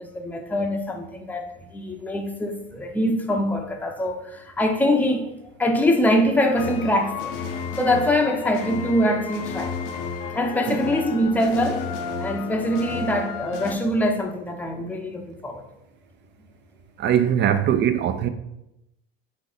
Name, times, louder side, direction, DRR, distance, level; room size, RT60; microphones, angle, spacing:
voice 1, 0.0-1.4 1.7-7.4 7.8-9.7 10.3-11.9 12.2-15.6, left 1 dB, 5° left, 0.6 m, -23 dB
sound 1, 6.6-13.8, left 6 dB, 80° left, 0.7 m, -32 dB
voice 2, 17.0-18.3, right 9 dB, 35° right, 0.5 m, -21 dB
4.0 x 3.2 x 3.8 m
supercardioid pair, 90°, 31 cm